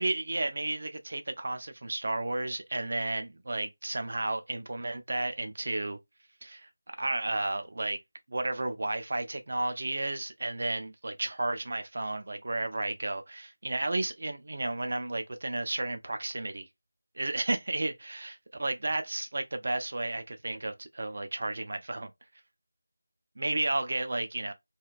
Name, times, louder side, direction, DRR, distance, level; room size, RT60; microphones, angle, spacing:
voice 1, 0.0-6.0 6.4-8.0 8.3-16.7 17.2-22.1 23.4-24.5, right 2 dB, 40° right, 0.4 m, -32 dB
2.5 x 2.1 x 2.3 m
figure-of-eight pair, 180°, 0 cm